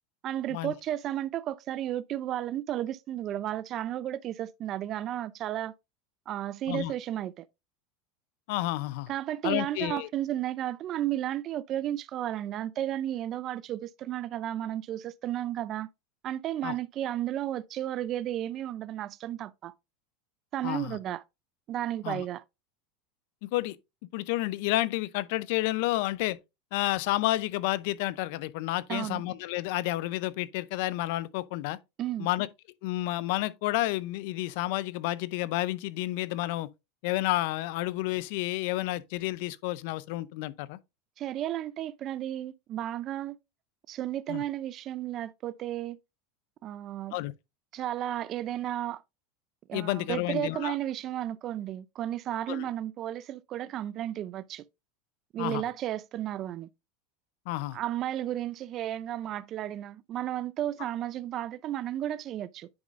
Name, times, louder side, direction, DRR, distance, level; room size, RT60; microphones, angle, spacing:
voice 1, 0.2-5.7 6.3-7.5 9.1-15.9 16.2-19.7 20.5-21.2 21.7-22.4 28.9-29.2 32.0-32.3 41.2-43.4 43.9-46.0 46.6-47.2 47.7-49.0 49.7-54.7 55.3-56.7 57.7-62.7, right 12 dB, 40° right, 0.4 m, -33 dB
voice 2, 8.5-9.1 9.4-10.1 16.6-16.7 20.6-21.0 22.0-22.2 23.4-23.8 24.1-26.4 26.7-31.8 32.2-32.5 32.8-36.7 37.0-40.8 44.3-44.4 47.1-47.3 49.7-50.7 52.5-52.7 55.4-55.6 57.5-57.8, left 17 dB, 65° left, 0.5 m, -30 dB
9.5 x 5.2 x 2.4 m
supercardioid pair, 120°, 0 cm